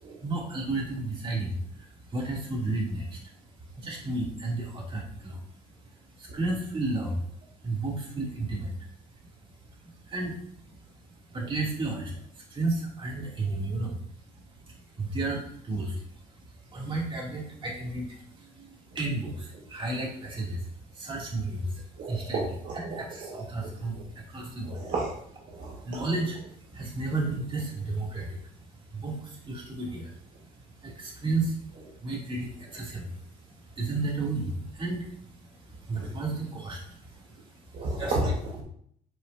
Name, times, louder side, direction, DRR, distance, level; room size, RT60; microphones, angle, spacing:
voice 1, 0.2-3.2 3.8-5.4 6.1-7.2 7.6-8.8 10.0-10.4 11.3-14.0 15.0-16.0 16.6-20.7 20.9-22.4 22.7-24.8 25.6-26.4 26.7-28.4 28.9-30.1 30.8-31.6 32.0-33.2 33.8-35.1 35.4-37.4 37.8-38.1, right 2 dB, 30° right, -3 dB, 2.5 m, -32 dB
voice 2, 22.0-23.4 23.9-24.0 24.6-25.1 25.5-26.1 37.7-38.6, right 2 dB, 55° right, -3 dB, 1.6 m, -32 dB
9.2 x 4.9 x 2.7 m, 0.65 s
cardioid pair, 110°, 17 cm